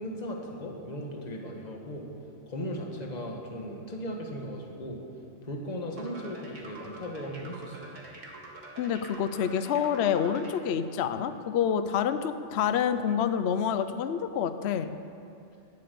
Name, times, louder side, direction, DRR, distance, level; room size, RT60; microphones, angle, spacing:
voice 1, 0.0-2.1 2.5-5.0 5.4-7.9, equal, 35° left, 1 dB, 1.7 m, -37 dB
sound 1, 6.0-10.6, right 2 dB, 75° right, 2.1 m, -46 dB
voice 2, 8.8-15.0, left 8 dB, 65° left, 11 dB, 0.9 m, -28 dB
18.5 x 8.4 x 6.9 m, 2.6 s
omnidirectional pair, 1.3 m